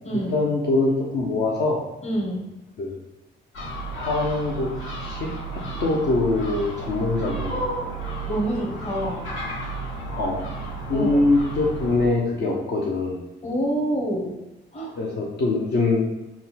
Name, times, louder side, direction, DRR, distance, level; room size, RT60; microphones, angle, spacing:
voice 1, 0.1-1.8 2.8-3.0 3.9-4.7 5.0-7.6 10.1-10.4 10.9-13.2 15.0-16.1, left 3 dB, 55° left, -3 dB, 0.7 m, -23 dB
voice 2, 2.0-2.5 7.5-7.8 8.3-9.3 10.9-11.2 13.4-14.4 14.7-14.9, right 1 dB, 35° left, -1 dB, 1.2 m, -27 dB
Gull seagull, 3.5-12.1, right 3 dB, 80° left, 1.1 m, -33 dB
3.8 x 2.3 x 4.2 m, 0.99 s
cardioid pair, 90°, 20 cm